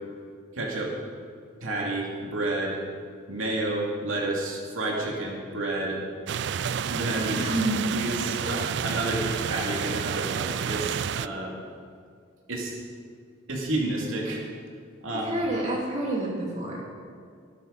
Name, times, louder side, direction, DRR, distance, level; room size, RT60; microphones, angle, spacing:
voice 1, 0.5-1.0 1.6-2.8 3.3-6.0 6.9-7.5 7.9-11.6 12.5-12.8 13.5-14.4 15.0-15.3, right 2 dB, 85° right, -2 dB, 2.7 m, -30 dB
sound 1, 6.3-11.3, right 8 dB, 55° right, 0.3 m, -30 dB
voice 2, 7.3-7.8 8.4-8.5 15.1-16.8, right 1 dB, 35° right, -4 dB, 2.9 m, -28 dB
17.5 x 12.5 x 4.2 m, 2.1 s
head